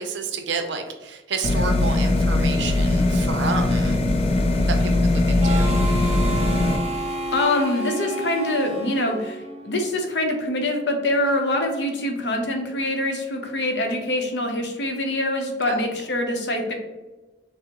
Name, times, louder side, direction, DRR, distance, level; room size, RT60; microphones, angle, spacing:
voice 1, 0.0-4.0 4.6-5.7 15.6-15.8, right 4 dB, 80° right, 6 dB, 0.6 m, -30 dB
sound 1, 1.4-6.8, left 2 dB, 35° left, 0.3 m, -20 dB
Harmonica, 5.4-9.9, right 2 dB, 35° right, 0.6 m, -30 dB
voice 2, 7.3-16.7, left 1 dB, 70° left, 3 dB, 0.7 m, -24 dB
6.0 x 2.1 x 2.9 m, 1.2 s
head